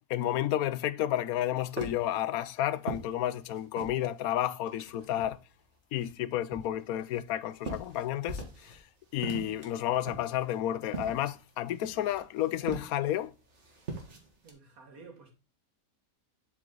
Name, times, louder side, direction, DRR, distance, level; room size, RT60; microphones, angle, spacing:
voice 1, 0.1-5.4 5.9-8.8 9.1-13.3, left 12 dB, 85° left, 1.1 m, -31 dB
sound 1, 1.4-4.1 4.4-5.6 6.0-8.8 9.1-14.5, right 3 dB, 55° right, 1.9 m, -42 dB
voice 2, 14.4-15.3, right 4 dB, 80° right, 2.1 m, -51 dB
7.6 x 4.9 x 3.8 m
omnidirectional pair, 1.5 m